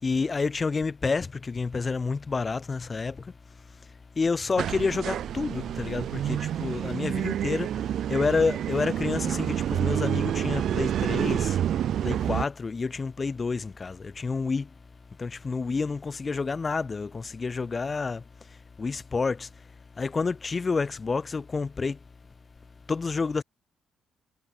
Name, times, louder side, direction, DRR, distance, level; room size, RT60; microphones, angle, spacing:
voice 1, 0.0-3.3 4.2-7.7 8.1-11.6 12.0-14.7 15.2-18.2 18.8-19.5 20.0-22.0 22.9-23.4, left 4 dB, 30° left, 4.0 m, -29 dB
sound 1, 4.6-12.4, right 10 dB, 70° right, 1.2 m, -28 dB
cardioid pair, 90°, 0 cm